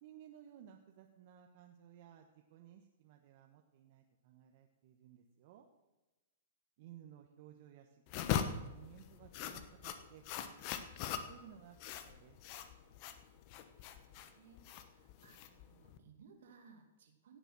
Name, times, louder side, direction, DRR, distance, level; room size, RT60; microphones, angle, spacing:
voice 1, 0.0-5.6 6.8-11.8 12.0-12.4, right 10 dB, 50° right, 4 dB, 1.1 m, -58 dB
sounds scraping toast dishtowel with knife - homemade, 8.1-16.0, left 9 dB, 45° left, 1.1 m, -41 dB
voice 2, 13.8-17.4, right 5 dB, 70° right, 5 dB, 2.4 m, -63 dB
17.0 x 6.9 x 6.1 m, 1.1 s
hypercardioid pair, 125°, 0 cm